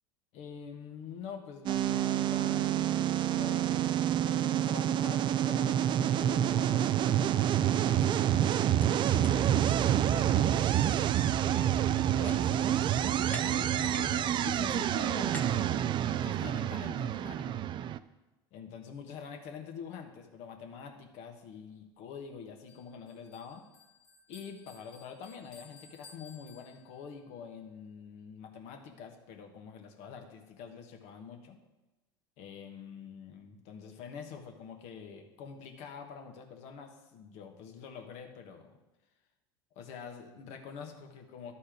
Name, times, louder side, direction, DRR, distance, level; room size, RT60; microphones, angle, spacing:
voice 1, 0.3-10.6 11.4-17.5 18.5-23.6 24.3-31.6 32.4-38.8 39.7-41.5, left 6 dB, 60° left, 4 dB, 1.4 m, -46 dB
sound 1, 1.7-18.0, right 11 dB, 40° right, 0.4 m, -28 dB
sound 2, 7.4-7.6 8.0-8.1 8.6-12.5 12.8-14.1 14.4-16.5, left 2 dB, 10° left, 0.8 m, -50 dB
Bell, 22.7-27.2, left 4 dB, 85° left, 2.0 m, -58 dB
12.0 x 4.3 x 5.1 m, 1.1 s
hypercardioid pair, 90°, 13 cm